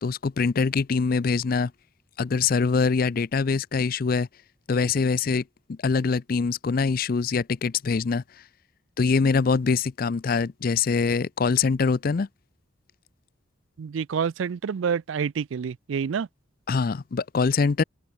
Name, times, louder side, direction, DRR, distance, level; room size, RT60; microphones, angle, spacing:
voice 1, 0.0-1.7 2.2-4.3 4.7-5.4 5.7-8.2 9.0-12.3 16.7-17.8, left 5 dB, 45° left, 0.4 m, -24 dB
voice 2, 13.8-16.3, right 6 dB, 75° right, 0.4 m, -28 dB
open air
head